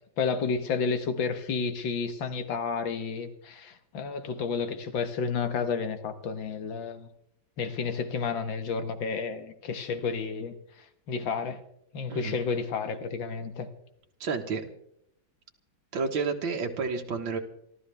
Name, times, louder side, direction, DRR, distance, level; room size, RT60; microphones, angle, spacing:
voice 1, 0.2-7.1 7.6-10.5 11.1-11.6 11.9-13.7, left 5 dB, 75° left, 9 dB, 2.1 m, -31 dB
voice 2, 14.2-14.7 15.9-17.4, right 4 dB, 85° right, 2 dB, 2.2 m, -30 dB
27.5 x 13.0 x 3.4 m, 0.74 s
omnidirectional pair, 2.1 m